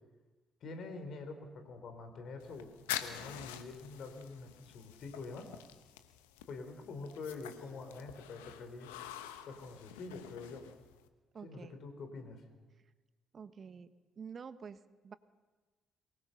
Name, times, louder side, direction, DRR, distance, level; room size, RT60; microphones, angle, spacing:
voice 1, 0.6-5.5 6.5-8.9 9.5-10.7 11.4-12.5, left 3 dB, 65° left, 7 dB, 4.1 m, -46 dB
sound 1, 2.4-11.1, left 11 dB, 85° left, 1.1 m, -47 dB
voice 2, 11.3-11.8 13.3-13.9 14.2-15.1, right 6 dB, 50° right, 12 dB, 1.2 m, -48 dB
23.0 x 20.0 x 6.7 m, 1.3 s
hypercardioid pair, 40°, 0 cm